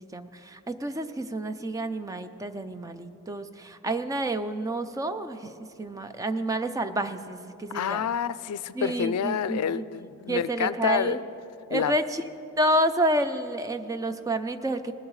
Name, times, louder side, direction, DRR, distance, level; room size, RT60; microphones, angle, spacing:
voice 1, 0.0-8.1 8.7-9.9 10.3-11.2 11.7-12.2 12.6-14.9, right 1 dB, 15° right, 9 dB, 0.4 m, -29 dB
voice 2, 7.7-11.2 11.7-11.9, left 8 dB, 80° left, 15 dB, 0.4 m, -28 dB
19.5 x 11.0 x 3.1 m, 2.7 s
head